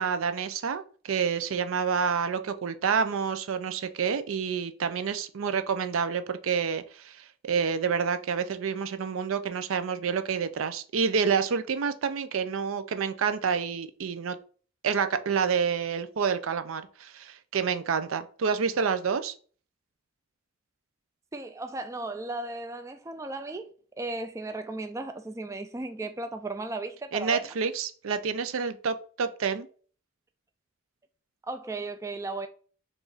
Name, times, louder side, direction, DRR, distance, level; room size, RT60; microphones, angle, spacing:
voice 1, 0.0-14.4 14.8-19.3 27.1-29.7, right 6 dB, 90° right, 0.5 m, -28 dB
voice 2, 21.3-23.7 24.0-27.4 31.5-32.5, right 2 dB, 15° right, 0.3 m, -35 dB
4.9 x 2.5 x 3.9 m
head